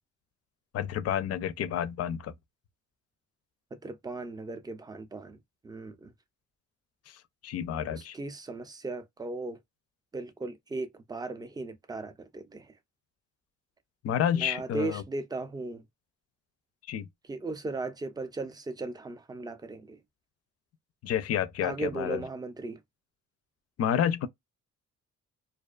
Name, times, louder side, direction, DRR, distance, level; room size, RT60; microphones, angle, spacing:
voice 1, 0.7-2.4 7.1-8.2 14.0-15.0 16.9-17.1 21.0-22.2 23.8-24.3, left 9 dB, 55° left, 0.4 m, -30 dB
voice 2, 3.7-5.4 5.6-6.1 7.9-9.6 10.1-12.7 14.4-15.8 17.3-20.0 21.6-22.8, right 3 dB, 15° right, 0.4 m, -37 dB
2.4 x 2.3 x 2.3 m
cardioid pair, 90°, 30 cm